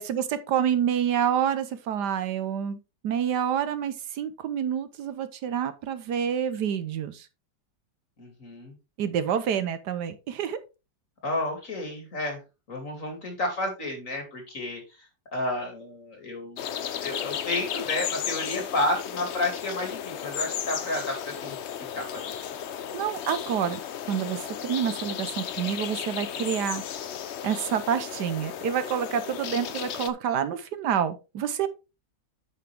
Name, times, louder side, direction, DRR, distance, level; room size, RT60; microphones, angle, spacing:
voice 1, 0.0-7.3 9.0-10.6 22.9-23.8 24.1-26.8 27.4-31.7, right 8 dB, 75° right, 1.4 m, -28 dB
voice 2, 8.2-8.7 11.2-12.4 12.7-14.8 15.3-16.8 17.0-22.4, left 2 dB, 45° left, 2.9 m, -31 dB
sound 1, 16.6-30.1, left 9 dB, 65° left, 0.7 m, -34 dB
8.9 x 5.9 x 3.4 m
omnidirectional pair, 1.9 m